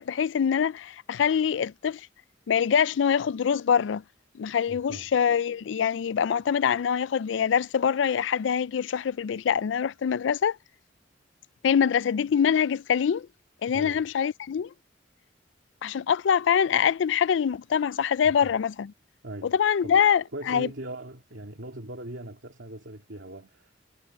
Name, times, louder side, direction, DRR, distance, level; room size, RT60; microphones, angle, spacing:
voice 1, 0.0-2.0 2.5-4.0 4.3-10.6 11.6-13.3 13.6-14.7 15.8-18.9 19.4-20.7, left 7 dB, 85° left, 0.4 m, -24 dB
voice 2, 4.7-5.1 13.7-14.1 18.2-18.6 19.2-19.6 19.8-20.0 20.3-23.7, right 1 dB, 85° right, 2.6 m, -40 dB
head